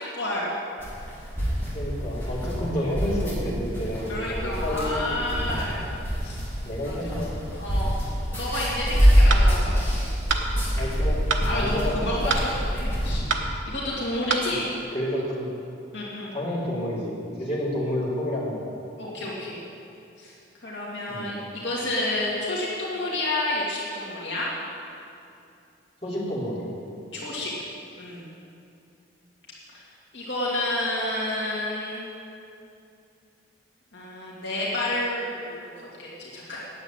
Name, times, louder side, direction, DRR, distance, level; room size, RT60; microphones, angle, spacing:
voice 1, 0.1-0.5 4.1-5.9 6.2-6.4 6.8-7.0 7.6-8.0 8.3-10.1 11.4-13.2 13.7-14.6 15.9-16.3 19.0-19.6 20.2-20.3 20.6-24.5 27.1-27.5 28.0-28.3 29.7-29.8 30.1-32.1 33.9-36.6, left 1 dB, 70° left, -6 dB, 2.3 m, -30 dB
sound 1, 0.8-13.1, equal, 10° left, 3.6 m, -25 dB
voice 2, 1.7-5.6 6.6-7.3 8.5-8.6 10.7-11.2 11.5-12.3 14.9-15.5 16.3-18.6 21.1-21.3 26.0-26.7, left 1 dB, 35° left, -8 dB, 3.2 m, -30 dB
sound 2, 9.3-9.5 10.3-10.5 11.3-11.5 12.3-12.5 13.3-13.5 14.3-14.5, right 4 dB, 80° right, 1.0 m, -25 dB
9.8 x 7.9 x 9.0 m, 2.6 s
head